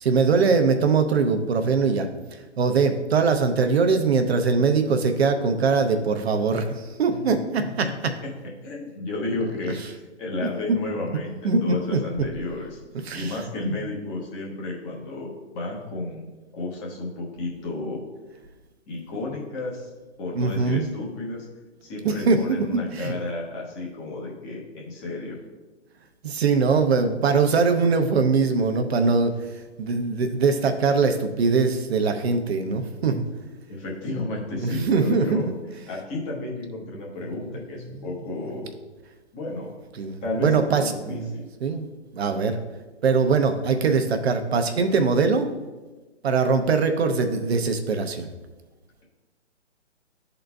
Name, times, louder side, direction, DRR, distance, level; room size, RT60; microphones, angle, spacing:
voice 1, 0.0-2.1 2.6-7.9 11.4-12.0 13.1-13.4 13.6-13.7 20.3-20.9 22.0-23.1 26.2-29.3 29.8-33.2 34.6-35.5 40.0-41.3 41.6-41.9 42.1-42.6 43.0-45.5 46.2-48.3, right 4 dB, 60° right, 7 dB, 0.8 m, -22 dB
voice 2, 7.6-7.9 8.2-12.8 13.1-16.2 16.5-18.0 18.9-19.9 20.2-21.5 21.8-25.4 33.7-35.5 35.9-38.7 39.3-39.7 40.2-41.5, left 2 dB, 20° left, -3 dB, 1.0 m, -32 dB
11.5 x 3.9 x 2.3 m, 1.2 s
hypercardioid pair, 145°, 36 cm